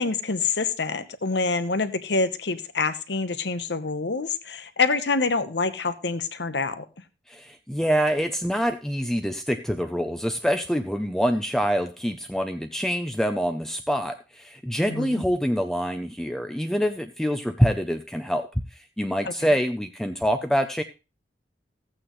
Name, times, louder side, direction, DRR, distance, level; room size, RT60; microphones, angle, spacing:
voice 1, 0.0-6.8 14.9-15.2, left 4 dB, 65° left, 11 dB, 1.0 m, -26 dB
voice 2, 7.3-20.8, equal, 5° left, 7 dB, 0.5 m, -25 dB
14.5 x 8.9 x 3.1 m, 0.29 s
head